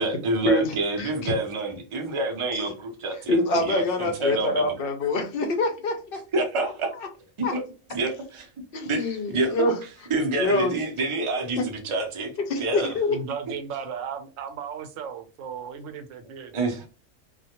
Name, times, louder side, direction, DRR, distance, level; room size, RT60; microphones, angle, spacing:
voice 1, 0.0-4.7 6.3-6.9 7.4-7.6 7.9-8.5 8.8-9.5 10.1-12.3 12.6-12.9 16.5-16.8, right 2 dB, 45° right, 0.4 m, -27 dB
voice 2, 1.0-1.3 3.3-5.9 7.4-7.5 8.7-9.8 10.3-10.7 11.6-11.7 12.5-13.2, left 2 dB, 60° left, 0.6 m, -25 dB
voice 3, 13.1-16.5, right 6 dB, 80° right, 0.9 m, -35 dB
2.3 x 2.1 x 2.8 m
omnidirectional pair, 1.3 m